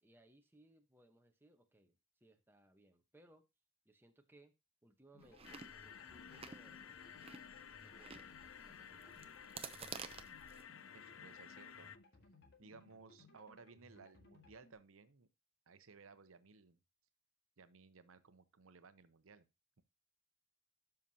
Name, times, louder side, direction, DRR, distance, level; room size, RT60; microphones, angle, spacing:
voice 1, 0.0-3.4 3.8-4.5 4.8-7.0 7.8-9.3, right 1 dB, 10° right, 1.0 m, -67 dB
sound 1, 5.1-14.7, left 2 dB, 60° left, 1.8 m, -65 dB
Chewing mastication, 5.2-10.6, right 6 dB, 30° right, 0.7 m, -53 dB
sound 2, 5.4-12.0, left 8 dB, 75° left, 0.5 m, -54 dB
voice 2, 10.9-12.0 12.6-15.3 15.7-16.8 17.6-19.5, right 4 dB, 85° right, 0.7 m, -60 dB
12.5 x 5.7 x 2.8 m
head